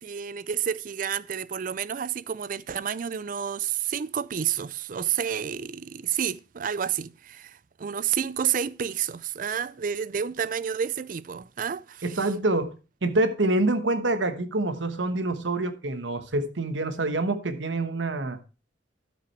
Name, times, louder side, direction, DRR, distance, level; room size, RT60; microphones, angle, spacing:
voice 1, 0.0-12.3, right 8 dB, 45° right, 0.4 m, -30 dB
voice 2, 12.0-12.7 13.0-18.4, right 2 dB, 80° right, 1.1 m, -26 dB
12.5 x 6.2 x 4.5 m
head